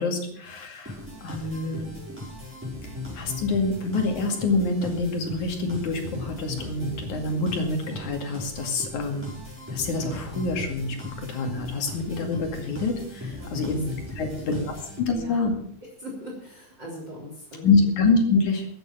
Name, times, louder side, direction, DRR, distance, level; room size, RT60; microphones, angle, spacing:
voice 1, 0.0-1.9 2.8-9.3 9.7-13.8 14.2-15.5 17.6-18.7, left 3 dB, 55° left, 4 dB, 3.5 m, -26 dB
sound 1, 0.8-15.4, left 2 dB, 5° right, 5.9 m, -38 dB
voice 2, 13.4-14.8 15.1-15.7 16.0-17.8, equal, 30° right, -2 dB, 4.0 m, -41 dB
15.0 x 9.1 x 7.2 m, 0.65 s
omnidirectional pair, 4.3 m